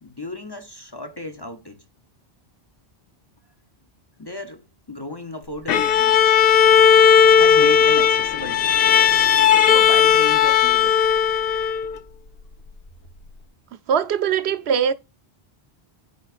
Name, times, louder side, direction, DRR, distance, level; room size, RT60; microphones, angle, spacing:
voice 1, 0.0-1.8 4.2-6.2 7.4-8.7 9.7-11.0, left 2 dB, 25° left, 0.7 m, -34 dB
Bowed string instrument, 5.7-12.0, left 8 dB, 70° left, 0.8 m, -16 dB
voice 2, 13.9-14.9, right 7 dB, 90° right, 0.9 m, -21 dB
9.4 x 4.5 x 2.5 m
omnidirectional pair, 1.0 m